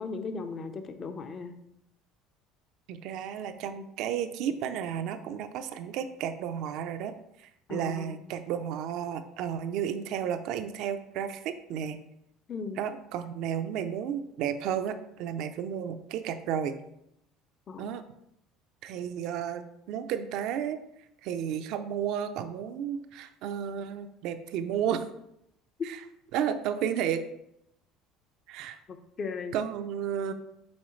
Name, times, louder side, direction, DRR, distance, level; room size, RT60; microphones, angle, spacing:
voice 1, 0.0-1.6 7.7-8.2 12.5-12.8 17.7-17.9 28.9-29.5, left 4 dB, 35° left, 8 dB, 0.7 m, -37 dB
voice 2, 2.9-7.1 7.4-12.0 12.8-16.7 17.8-18.0 18.8-19.6 19.9-20.8 21.2-25.1 25.8-26.0 26.3-27.2 28.5-28.8 29.5-30.3, right 9 dB, 65° right, 9 dB, 0.5 m, -32 dB
7.2 x 4.7 x 3.2 m, 0.79 s
supercardioid pair, 110°, 0 cm